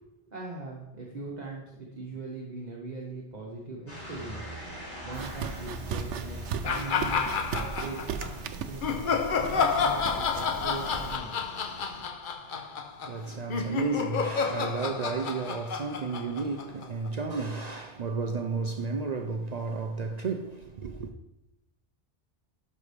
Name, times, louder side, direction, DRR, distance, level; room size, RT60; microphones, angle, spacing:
voice 1, 0.3-4.5 5.0-8.1 8.6-11.5, right 2 dB, 40° right, 1.3 m, -40 dB
sound 1, 3.9-12.0, equal, 85° left, 3.8 m, -44 dB
sound 2, 5.1-11.2, right 6 dB, 85° right, 0.9 m, -37 dB
sound 3, 6.6-8.3 8.8-17.1, left 6 dB, 55° left, 0.8 m, -30 dB
voice 2, 13.0-21.1, right 4 dB, 55° right, 0.4 m, -32 dB
12.0 x 5.6 x 3.2 m
omnidirectional pair, 1.2 m